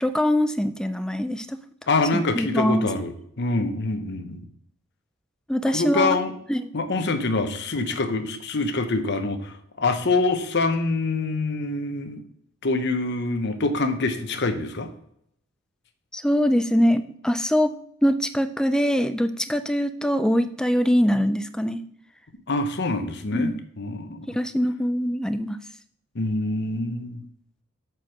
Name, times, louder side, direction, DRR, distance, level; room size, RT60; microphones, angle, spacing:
voice 1, 0.0-1.5 2.3-2.9 5.5-6.2 6.5-6.7 16.1-17.7 18.0-21.8 23.3-23.6 24.3-25.6, equal, 5° left, 11 dB, 0.3 m, -23 dB
voice 2, 1.9-4.5 5.7-6.3 6.7-12.2 12.6-14.9 22.5-24.3 26.1-27.2, left 3 dB, 55° left, 8 dB, 0.9 m, -25 dB
8.1 x 4.6 x 6.4 m, 0.72 s
head